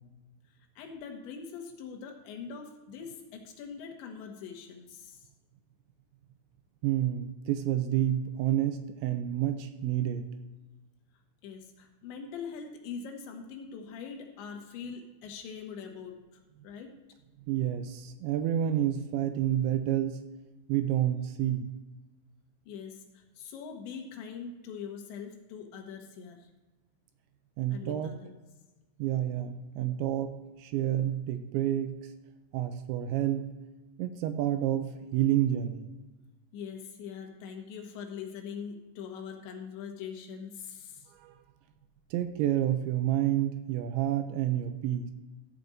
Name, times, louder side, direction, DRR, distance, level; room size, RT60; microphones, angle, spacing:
voice 1, 0.8-5.2 11.4-16.9 22.7-26.5 27.7-28.3 36.5-41.1, left 6 dB, 70° left, 2 dB, 3.3 m, -42 dB
voice 2, 6.8-10.3 17.5-20.2 20.7-21.7 27.6-28.1 29.0-32.0 32.5-33.5 34.0-35.9 41.1-41.4 42.1-45.1, right 11 dB, 85° right, 8 dB, 2.7 m, -29 dB
13.5 x 5.1 x 6.4 m, 1.2 s
omnidirectional pair, 5.6 m